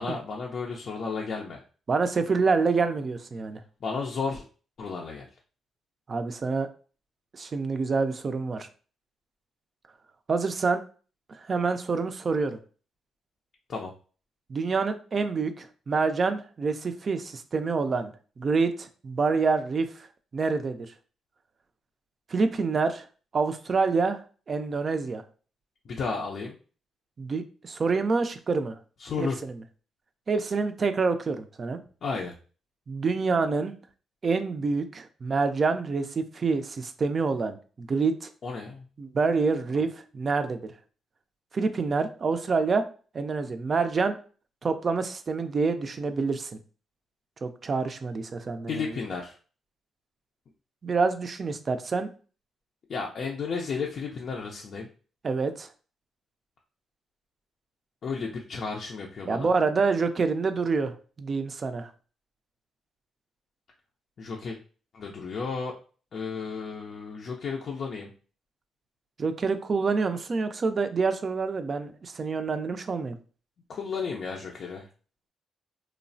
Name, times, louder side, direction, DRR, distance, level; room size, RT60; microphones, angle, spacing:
voice 1, 0.0-1.6 3.8-4.4 4.8-5.3 13.7-13.9 25.8-26.6 29.0-29.4 32.0-32.3 38.4-38.9 48.7-49.4 52.9-54.9 58.0-59.5 64.2-64.6 64.9-65.8 66.1-68.1 73.7-74.9, left 5 dB, 60° left, 0 dB, 0.4 m, -33 dB
voice 2, 1.9-3.6 6.1-6.7 7.3-8.7 10.3-10.8 11.3-12.6 14.5-20.1 20.3-20.9 22.3-23.0 23.3-24.2 24.5-25.2 27.2-28.8 29.2-29.5 30.3-31.8 32.9-33.7 34.2-38.3 39.0-40.6 41.5-42.8 43.1-44.2 44.6-46.6 47.4-48.8 50.8-52.1 55.2-55.7 59.3-61.9 69.2-73.2, right 4 dB, 45° right, 9 dB, 0.4 m, -27 dB
3.0 x 2.0 x 2.6 m, 0.38 s
cardioid pair, 70°, 0 cm